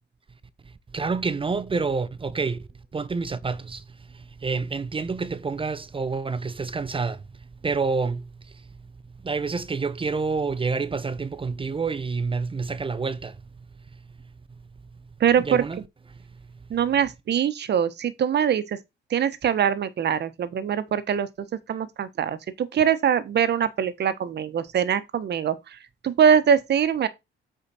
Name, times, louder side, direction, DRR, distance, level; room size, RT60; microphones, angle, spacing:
voice 1, 0.9-8.7 9.2-13.4 13.9-14.0 15.4-15.8 16.1-16.2, right 4 dB, 25° right, 0.8 m, -28 dB
voice 2, 15.2-15.6 16.7-18.8 19.1-21.3 21.7-25.8 26.0-27.1, right 8 dB, 60° right, 1.3 m, -23 dB
8.2 x 5.0 x 4.2 m
cardioid pair, 90°, 20 cm